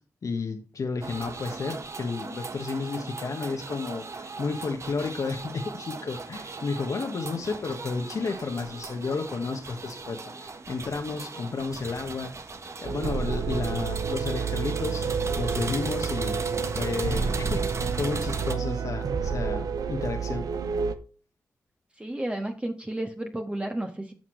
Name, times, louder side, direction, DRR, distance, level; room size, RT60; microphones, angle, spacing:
voice 1, 0.2-12.3 12.8-15.0 15.4-20.5, left 4 dB, 60° left, 4 dB, 1.4 m, -32 dB
sound 1, 1.0-18.5, right 3 dB, 50° right, 1.3 m, -38 dB
sound 2, 12.8-21.0, right 6 dB, 75° right, 0.8 m, -29 dB
voice 2, 22.0-24.1, right 1 dB, 20° right, 3 dB, 1.5 m, -32 dB
10.5 x 5.9 x 3.2 m, 0.37 s
supercardioid pair, 45°, 6 cm